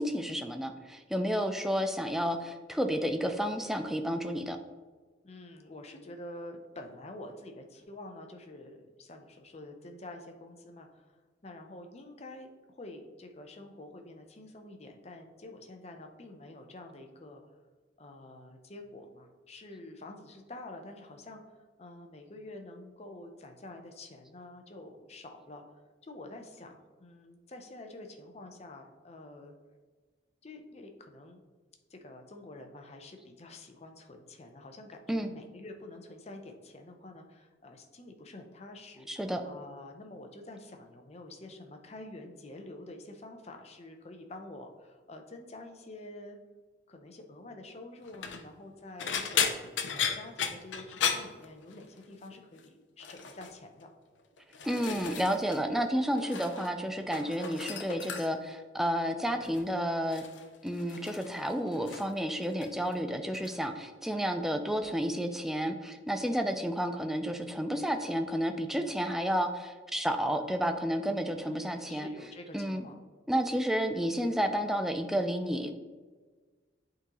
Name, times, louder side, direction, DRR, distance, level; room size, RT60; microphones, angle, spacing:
voice 1, 0.0-4.6 35.1-35.3 39.1-39.4 54.6-60.2 60.6-72.1 72.5-72.9 73.3-75.7, equal, ahead, 5 dB, 0.4 m, -31 dB
voice 2, 5.2-17.4 18.0-21.4 21.8-25.6 26.0-29.5 30.4-31.4 31.9-39.1 39.4-46.4 46.9-49.6 49.9-53.9 71.4-73.0, left 2 dB, 35° left, 4 dB, 0.6 m, -48 dB
sound 1, 48.0-48.4 49.0-52.0 52.3-52.7 53.0-53.5 54.2-55.6 55.9-56.7 57.0-58.5 59.4-59.7 60.1-62.2 62.4-63.0 63.3-63.6 64.8-64.9, left 7 dB, 80° left, 0.5 m, -35 dB
8.3 x 3.8 x 3.0 m, 1.4 s
head